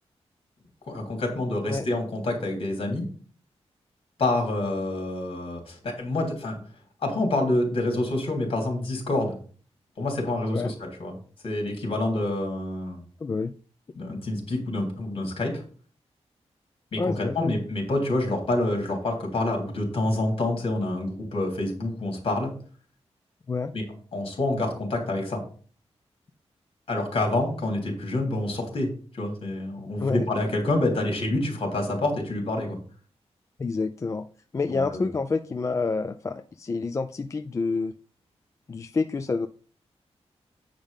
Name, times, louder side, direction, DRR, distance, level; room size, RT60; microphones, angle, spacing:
voice 1, 0.9-3.0 4.2-6.6 7.0-9.3 10.0-11.1 11.4-13.0 13.9-15.6 16.9-22.5 23.7-23.8 24.1-25.4 26.9-32.8 34.6-35.1, left 2 dB, 55° left, 1 dB, 3.4 m, -27 dB
voice 2, 13.2-13.5 17.0-17.5 23.5-23.7 30.0-30.2 33.6-34.3 34.5-37.9 38.7-39.5, left 4 dB, 25° left, 7 dB, 0.4 m, -28 dB
9.0 x 5.2 x 5.2 m, 0.42 s
wide cardioid pair, 180°, 11 cm